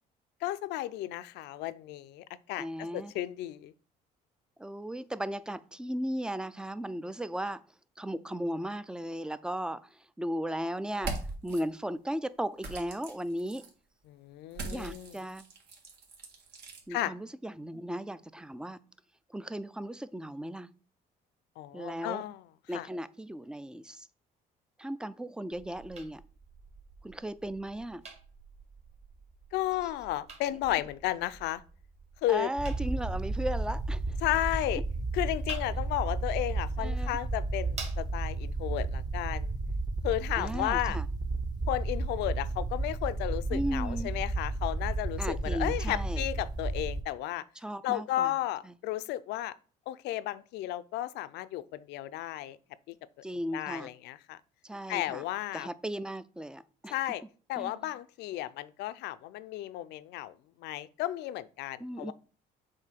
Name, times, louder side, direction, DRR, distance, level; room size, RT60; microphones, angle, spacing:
voice 1, 0.4-3.7 14.1-15.2 16.9-17.1 21.6-22.4 22.7-22.9 29.5-31.6 32.2-32.5 34.2-34.8 35.1-39.5 40.0-41.0 41.7-47.4 47.8-49.5 49.9-52.6 52.9-53.0 53.5-54.4 54.9-55.7 56.9-57.2 57.5-60.3 60.6-62.1, left 14 dB, 85° left, 0.5 m, -33 dB
voice 2, 2.6-3.1 4.6-7.6 8.0-11.2 11.4-13.7 14.6-15.4 16.9-18.8 19.3-20.7 21.7-22.2 22.7-24.1 24.8-26.2 27.0-28.0 32.3-34.2 36.8-37.2 40.4-41.1 43.5-44.1 45.2-46.2 47.6-48.3 48.6-48.7 53.2-53.9 54.6-55.2 55.5-56.9 57.6-57.7 61.8-62.1, equal, 5° right, 0.3 m, -36 dB
sound 1, 10.9-11.6 12.6-13.7 14.5-16.8, right 3 dB, 75° right, 1.9 m, -40 dB
sound 2, 25.5-38.5, right 4 dB, 40° right, 1.8 m, -50 dB
sound 3, 32.6-47.0, right 2 dB, 25° right, 0.8 m, -33 dB
7.5 x 2.7 x 5.8 m
cardioid pair, 110°, 17 cm